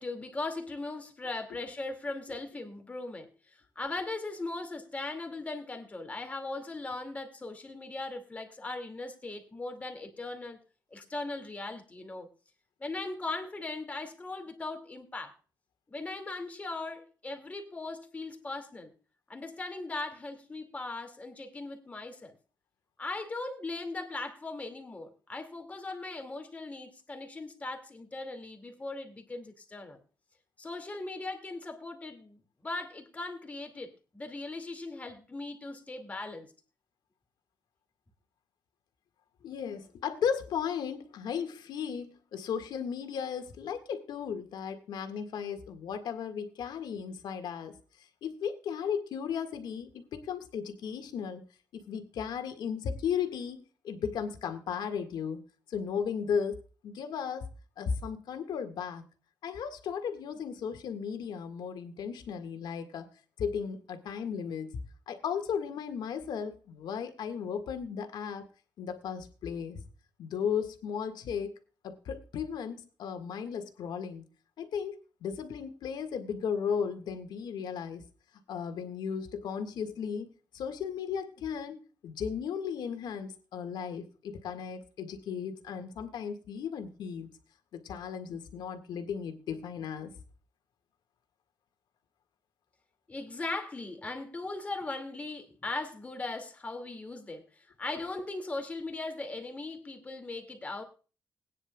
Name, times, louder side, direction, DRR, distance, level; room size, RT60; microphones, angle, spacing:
voice 1, 0.0-10.6 10.9-12.3 12.8-15.3 15.9-18.9 19.3-22.4 23.0-30.0 30.6-36.5 93.1-100.8, left 2 dB, 20° left, 5 dB, 2.3 m, -39 dB
voice 2, 39.4-47.7 48.2-51.4 51.7-55.4 55.7-57.4 57.8-59.0 59.4-63.1 63.4-64.7 65.1-68.4 68.8-69.8 70.2-71.6 71.8-74.3 74.6-78.0 78.5-80.3 80.5-87.3 87.7-90.1, left 7 dB, 85° left, 8 dB, 1.8 m, -35 dB
21.0 x 9.8 x 2.3 m, 0.36 s
wide cardioid pair, 160°, 7 cm